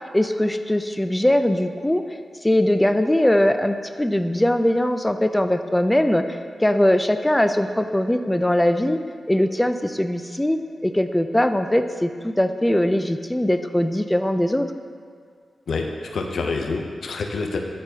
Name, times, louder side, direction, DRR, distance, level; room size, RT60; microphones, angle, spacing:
voice 1, 0.0-2.0 2.4-6.2 6.6-9.0 9.3-14.7, left 1 dB, 10° left, 8 dB, 0.3 m, -21 dB
voice 2, 15.7-17.6, left 4 dB, 80° left, 3 dB, 0.5 m, -27 dB
8.7 x 3.9 x 2.7 m, 2.1 s
cardioid pair, 65°, 0 cm